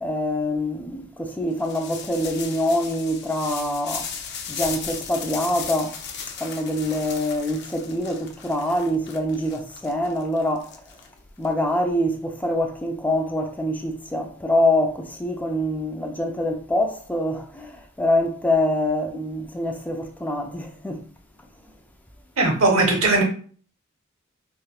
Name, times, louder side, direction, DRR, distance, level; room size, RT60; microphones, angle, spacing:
voice 1, 0.0-4.1 4.5-6.0 6.4-10.8 11.4-21.0, left 1 dB, 10° left, 0.4 m, -25 dB
sound 1, 1.6-11.5, left 6 dB, 55° left, 0.6 m, -36 dB
voice 2, 22.4-23.2, right 2 dB, 80° right, 0.9 m, -18 dB
4.8 x 2.3 x 2.4 m
head